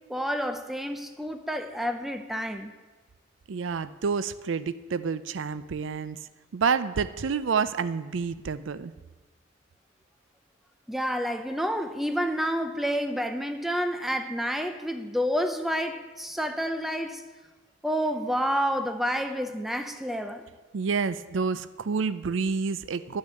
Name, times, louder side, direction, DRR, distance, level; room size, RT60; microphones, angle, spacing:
voice 1, 0.1-2.7 10.9-17.2 17.8-20.5, equal, ahead, 7 dB, 0.6 m, -29 dB
voice 2, 3.5-6.2 6.5-8.9 20.7-23.2, right 5 dB, 80° right, 15 dB, 0.5 m, -28 dB
11.0 x 6.3 x 8.7 m, 1.3 s
head